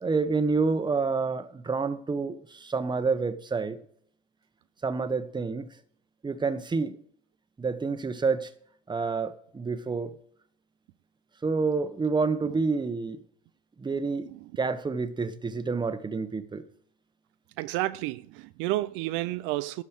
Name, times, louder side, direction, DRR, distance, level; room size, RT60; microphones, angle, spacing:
voice 1, 0.0-3.8 4.8-5.7 6.2-7.0 7.6-8.5 8.9-10.1 11.4-13.2 13.8-16.6, right 4 dB, 25° right, 1.2 m, -28 dB
voice 2, 17.6-19.8, right 17 dB, 85° right, 0.5 m, -30 dB
12.0 x 5.3 x 6.5 m
supercardioid pair, 80°, 19 cm